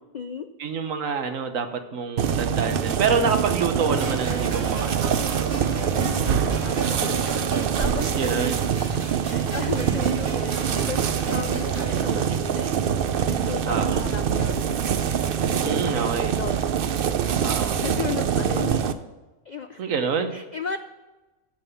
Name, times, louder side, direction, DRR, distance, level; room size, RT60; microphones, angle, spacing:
voice 1, 0.0-0.5 5.9-8.6 8.9-12.8 13.2-14.8 15.4-16.7 17.7-18.8 19.4-19.8 20.3-20.8, left 6 dB, 70° left, 9 dB, 0.4 m, -35 dB
voice 2, 0.6-5.2 5.5-5.9 7.9-8.7 13.7-14.0 15.6-16.3 17.4-17.8 19.8-20.4, right 5 dB, 70° right, 8 dB, 1.4 m, -27 dB
sound 1, 2.2-18.9, right 8 dB, 55° right, 0.7 m, -24 dB
sound 2, 4.0-12.0, right 1 dB, 90° right, 2.6 m, -36 dB
14.5 x 5.5 x 6.9 m, 1.1 s
omnidirectional pair, 1.4 m